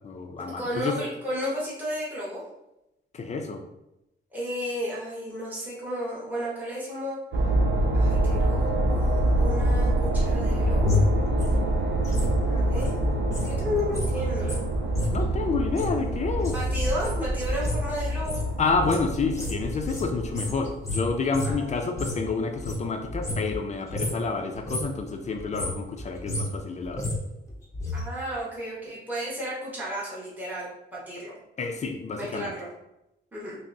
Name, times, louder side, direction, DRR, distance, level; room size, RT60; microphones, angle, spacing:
voice 1, 0.0-1.0 3.1-3.6 15.1-16.5 18.6-27.0 31.6-32.5, left 4 dB, 35° left, 4 dB, 0.4 m, -29 dB
voice 2, 0.6-2.4 4.3-7.2 7.9-11.1 12.5-13.0 13.5-14.6 16.5-18.4 21.4-21.7 27.9-31.4 32.2-32.7 33.3-33.6, equal, 10° right, -7 dB, 1.0 m, -33 dB
sound 1, 7.3-20.9, right 1 dB, 75° right, 0.6 m, -26 dB
sound 2, 10.0-13.5 13.8-22.3 22.6-23.6 23.9-24.3 24.5-25.0 25.4-28.0 28.3-28.4, left 2 dB, 15° left, 0.8 m, -31 dB
5.8 x 2.0 x 2.6 m, 0.89 s
wide cardioid pair, 145°, 20 cm